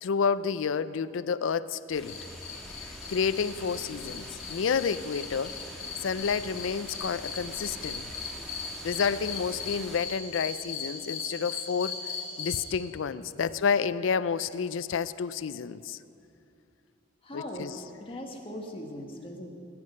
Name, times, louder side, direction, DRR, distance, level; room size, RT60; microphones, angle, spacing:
voice 1, 0.0-2.2 3.1-5.5 6.0-8.1 8.8-12.0 12.4-16.0 17.3-17.7, left 6 dB, 70° left, 16 dB, 0.4 m, -30 dB
sound 1, 1.9-10.0, equal, ahead, 1.6 m, -45 dB
sound 2, 2.0-12.7, left 5 dB, 50° left, 3.7 m, -39 dB
voice 2, 17.2-19.5, left 1 dB, 30° left, 1 dB, 1.6 m, -40 dB
19.0 x 9.6 x 5.4 m, 2.6 s
head